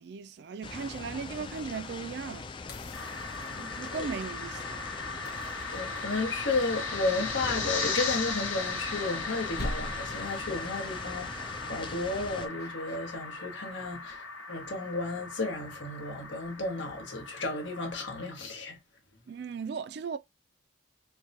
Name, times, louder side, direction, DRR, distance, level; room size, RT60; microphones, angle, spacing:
voice 1, 0.0-2.5 3.5-4.8 19.3-20.2, right 5 dB, 60° right, 0.3 m, -37 dB
sound 1, 0.6-12.5, left 4 dB, 25° left, 0.3 m, -41 dB
sound 2, 2.7-4.0 5.3-6.4 8.2-9.3 9.6-10.3 12.6-13.0, left 1 dB, 55° left, 1.0 m, -41 dB
sound 3, 2.9-18.3, left 3 dB, 90° left, 1.6 m, -37 dB
voice 2, 5.7-18.8, left 3 dB, 75° left, 1.3 m, -33 dB
4.6 x 2.3 x 2.8 m
head